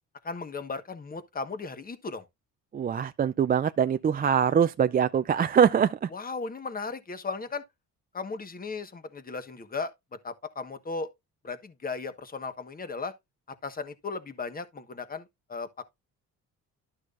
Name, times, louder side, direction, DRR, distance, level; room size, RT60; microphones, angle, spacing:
voice 1, 0.2-2.2 6.1-7.6 8.1-9.9 10.2-11.1 11.4-13.1 13.6-15.8, left 4 dB, 25° left, 1.3 m, -36 dB
voice 2, 2.7-6.1, right 8 dB, 30° right, 0.4 m, -23 dB
12.0 x 6.2 x 2.5 m
cardioid pair, 120°, 32 cm